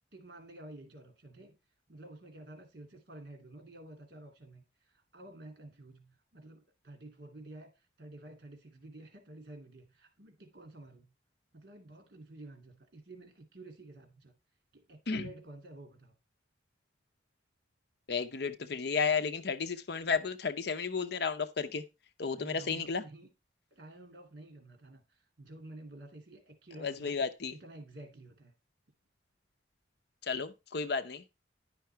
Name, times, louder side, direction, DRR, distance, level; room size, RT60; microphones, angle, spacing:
voice 1, 0.1-1.6 1.9-11.1 11.5-14.3 14.7-16.1 22.3-23.3 23.7-27.2 27.5-28.5, right 2 dB, 55° right, 2.5 m, -51 dB
voice 2, 18.1-21.8 22.2-23.0 26.8-27.5 30.2-31.2, left 5 dB, 60° left, 0.7 m, -33 dB
10.5 x 5.7 x 4.5 m
head